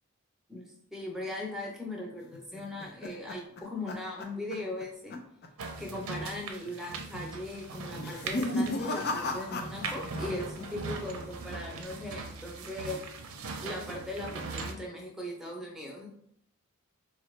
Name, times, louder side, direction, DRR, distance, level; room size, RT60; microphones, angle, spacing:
voice 1, 0.5-5.2 5.8-13.1 13.6-16.1, left 1 dB, ahead, -2 dB, 0.7 m, -39 dB
sound 1, 2.3-4.8 5.1-5.5 5.8-5.9 6.6-7.0 7.9-10.3 10.6-11.2, left 2 dB, 50° left, 0.5 m, -35 dB
sound 2, 5.6-14.7, right 3 dB, 70° right, 0.5 m, -40 dB
3.9 x 2.4 x 3.1 m, 0.71 s
head